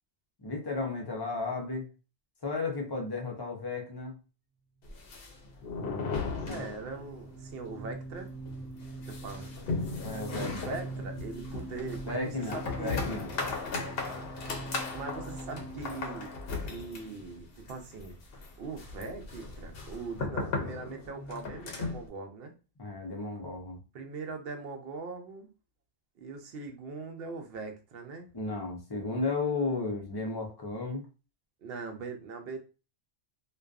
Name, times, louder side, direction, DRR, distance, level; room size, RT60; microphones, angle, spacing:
voice 1, 0.4-1.9 2.4-4.2 6.4-6.6 10.0-10.7 12.1-13.3 22.8-23.8 28.3-31.0, left 3 dB, 35° left, 0 dB, 0.4 m, -34 dB
sound 1, 4.8-7.2 7.5-7.6 7.9-8.0 8.4-22.1, left 4 dB, 60° left, 0.7 m, -37 dB
sound 2, 5.4-17.8, right 3 dB, 85° right, 0.9 m, -44 dB
voice 2, 6.4-8.3 9.1-9.5 10.0-13.0 13.8-16.3 16.7-18.2 18.6-22.5 23.9-25.5 26.2-28.3 31.6-32.6, right 4 dB, 60° right, 5 dB, 0.7 m, -41 dB
2.5 x 2.3 x 2.3 m, 0.32 s
omnidirectional pair, 1.2 m